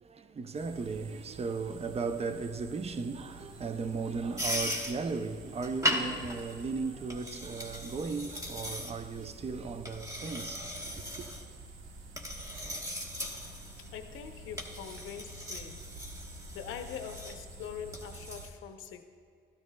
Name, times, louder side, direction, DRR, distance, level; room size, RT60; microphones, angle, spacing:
voice 1, 0.0-11.3, right 4 dB, 30° right, 0.6 m, -36 dB
sound 1, 0.5-18.5, right 2 dB, 90° right, 0.9 m, -50 dB
sound 2, 4.4-18.5, equal, 15° right, 1.2 m, -39 dB
voice 2, 13.8-15.8 16.5-19.0, left 8 dB, 85° left, 0.7 m, -43 dB
13.0 x 12.5 x 2.2 m
cardioid pair, 90°, 20 cm